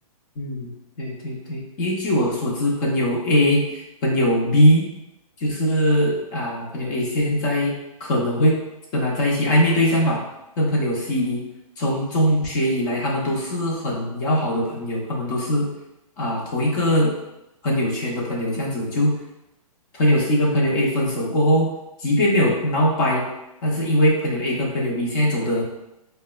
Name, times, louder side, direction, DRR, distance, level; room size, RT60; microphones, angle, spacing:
voice 1, 0.4-0.7 1.0-4.9 5.4-7.7 8.0-8.6 8.9-10.2 10.6-11.4 11.8-15.7 16.2-17.1 17.6-19.1 19.9-21.7 22.0-23.3 23.6-25.6, equal, 30° left, -3 dB, 0.7 m, -21 dB
4.8 x 2.1 x 2.2 m, 0.92 s
hypercardioid pair, 155°, 19 cm